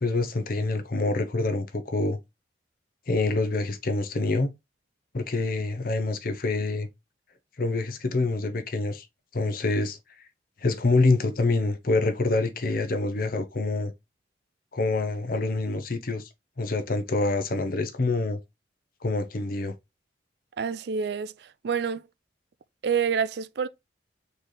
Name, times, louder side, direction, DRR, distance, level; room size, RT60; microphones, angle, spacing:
voice 1, 0.0-2.2 3.1-4.5 5.1-6.9 7.6-9.1 9.3-10.0 10.6-13.9 14.7-16.2 16.6-18.4 19.0-19.7, left 3 dB, 50° left, 0.6 m, -26 dB
voice 2, 20.6-21.3 21.6-22.0 22.8-23.7, right 6 dB, 60° right, 0.4 m, -27 dB
4.1 x 3.2 x 3.8 m
head